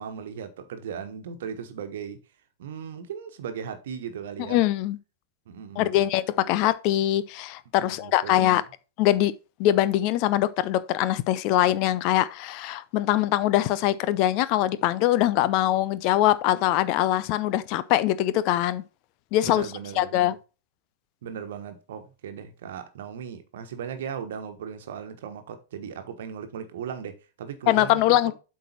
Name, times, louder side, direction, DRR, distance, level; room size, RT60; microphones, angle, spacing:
voice 1, 0.0-2.2 2.6-4.6 5.5-5.9 7.8-8.5 19.5-20.3 21.2-28.3, right 7 dB, 55° right, 1.3 m, -37 dB
voice 2, 4.5-5.0 5.8-8.6 9.0-9.3 9.6-18.8 19.3-19.7 20.0-20.3 27.7-28.3, left 14 dB, 40° left, 0.6 m, -23 dB
7.9 x 4.7 x 4.4 m
figure-of-eight pair, 95°, 0 cm